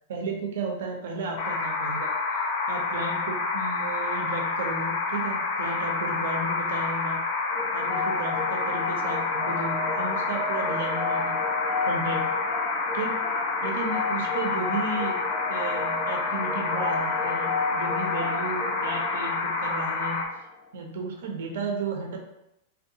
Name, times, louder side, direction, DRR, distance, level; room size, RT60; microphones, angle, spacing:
voice 1, 0.1-7.2 7.7-11.4 11.9-12.2 12.9-13.2 13.6-15.2 15.5-20.2 20.7-22.2, right 3 dB, 75° right, 2 dB, 0.5 m, -34 dB
sound 1, 1.4-20.3, left 4 dB, 65° left, 0.5 m, -28 dB
sound 2, 7.5-20.3, left 4 dB, ahead, 0.3 m, -33 dB
2.6 x 2.2 x 2.6 m, 0.84 s
hypercardioid pair, 120°, 0 cm